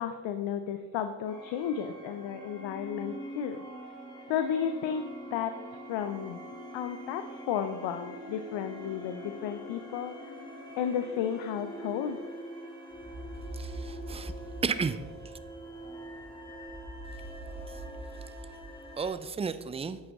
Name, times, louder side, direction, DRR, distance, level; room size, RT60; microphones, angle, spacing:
voice 1, 0.0-3.6 4.3-5.0 5.3-5.5 5.9-6.4 6.7-10.1 10.8-12.2, left 8 dB, 70° left, 9 dB, 0.6 m, -33 dB
sound 1, 1.2-19.1, equal, 10° left, 2.2 m, -43 dB
voice 2, 13.5-14.3 14.6-15.3 17.7-17.8 19.0-20.0, right 5 dB, 15° right, 13 dB, 0.3 m, -33 dB
8.7 x 5.5 x 3.5 m, 1.4 s
hypercardioid pair, 45°, 48 cm